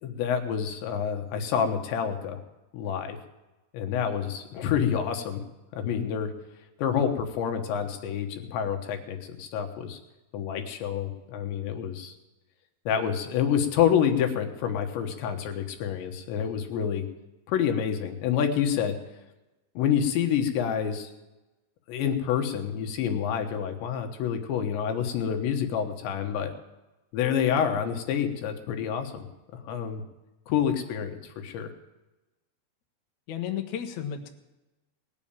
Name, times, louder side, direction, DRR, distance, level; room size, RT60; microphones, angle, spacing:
voice 1, 0.0-2.4 2.7-3.2 3.7-5.4 5.8-6.3 6.8-10.0 10.3-12.1 12.9-17.1 17.5-19.0 19.8-21.1 21.9-26.5 27.1-29.3 29.5-30.0 30.5-31.7, left 8 dB, 80° left, 5 dB, 3.6 m, -28 dB
voice 2, 33.3-34.3, left 9 dB, 65° left, 5 dB, 1.9 m, -33 dB
19.0 x 7.2 x 8.7 m, 1.0 s
omnidirectional pair, 5.0 m